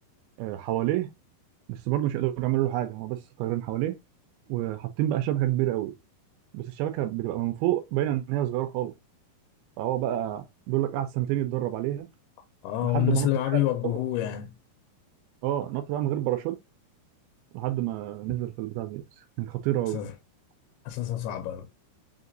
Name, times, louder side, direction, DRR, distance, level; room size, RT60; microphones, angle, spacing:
voice 1, 0.4-1.1 1.7-3.9 4.5-5.9 6.5-8.9 9.8-12.1 12.8-13.7 15.4-16.6 17.5-20.0, right 14 dB, 80° right, 2.3 m, -28 dB
voice 2, 12.6-14.6 19.9-20.1 20.9-21.7, left 13 dB, 85° left, 2.6 m, -27 dB
5.8 x 2.8 x 2.5 m
omnidirectional pair, 4.6 m